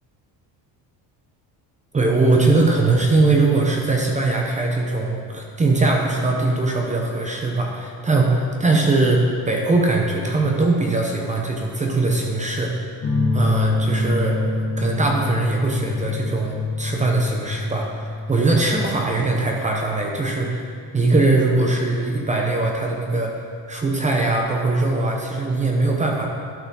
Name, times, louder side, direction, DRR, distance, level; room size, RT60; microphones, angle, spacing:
voice 1, 1.9-12.8 13.3-14.4 14.8-20.7 20.9-23.4 23.7-26.3, right 3 dB, 15° right, 0 dB, 0.7 m, -21 dB
sound 1, 13.0-20.7, left 2 dB, 35° left, 1.8 m, -26 dB
11.5 x 4.8 x 4.0 m, 2.3 s
cardioid pair, 140°, 43 cm